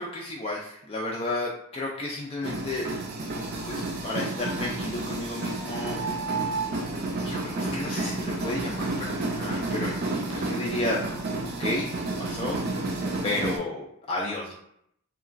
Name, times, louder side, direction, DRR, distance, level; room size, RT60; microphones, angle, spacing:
voice 1, 0.0-2.8 3.6-6.0 7.2-9.9 10.3-11.0 11.6-11.9 12.2-12.6 13.2-14.5, left 2 dB, 25° left, -3 dB, 0.3 m, -32 dB
sound 1, 2.4-13.6, right 2 dB, 45° right, 0.5 m, -30 dB
2.9 x 2.3 x 2.4 m, 0.73 s
head